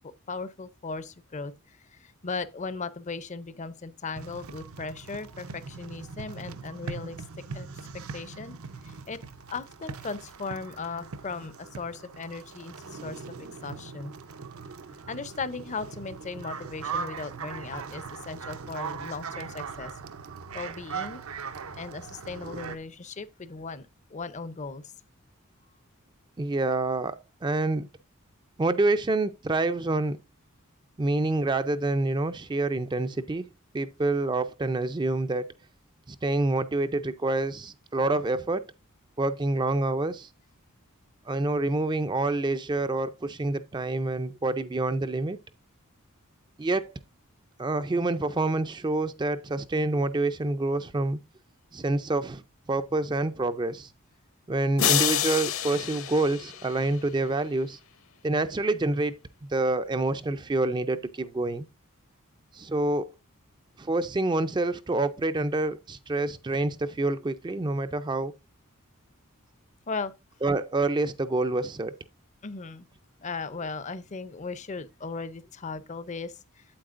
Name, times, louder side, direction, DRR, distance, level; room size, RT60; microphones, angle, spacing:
voice 1, 0.0-7.2 7.5-7.7 8.1-8.5 8.8-9.2 9.5-14.2 15.1-19.9 20.5-21.2 21.7-24.9 69.9-70.1 72.4-72.9 73.2-76.6, left 4 dB, 30° left, 0.5 m, -37 dB
sound 1, 4.2-22.8, right 5 dB, 75° right, 0.7 m, -40 dB
voice 2, 26.4-27.9 28.6-30.2 31.0-33.5 33.7-35.5 36.1-38.7 39.2-40.3 41.3-45.4 46.6-46.9 47.6-51.2 51.7-52.4 52.7-53.9 54.5-57.8 58.2-59.2 59.5-61.7 62.5-63.1 63.8-68.3 70.4-72.0, right 2 dB, 20° right, 0.4 m, -27 dB
sound 2, 54.8-57.1, left 10 dB, 65° left, 0.9 m, -28 dB
8.6 x 8.3 x 2.5 m
head